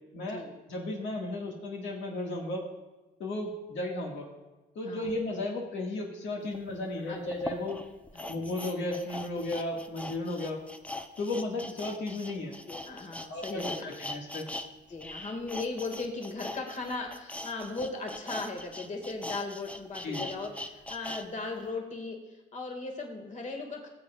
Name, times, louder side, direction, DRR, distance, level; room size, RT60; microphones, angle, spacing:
voice 1, 0.2-0.5 4.9-5.1 7.1-7.2 8.1-8.3 12.7-13.9 14.9-23.9, left 3 dB, 40° left, 2 dB, 1.8 m, -37 dB
voice 2, 0.7-2.6 3.2-4.3 4.7-7.8 8.3-10.6 11.2-12.5 13.3-14.4 20.0-20.3, left 2 dB, 75° left, -1 dB, 1.7 m, -34 dB
sound 1, 6.5-6.6 7.3-14.7 14.9-21.2 21.6-21.7, left 1 dB, 5° left, 0.6 m, -40 dB
16.5 x 7.5 x 2.3 m, 1.1 s
cardioid pair, 90°, 20 cm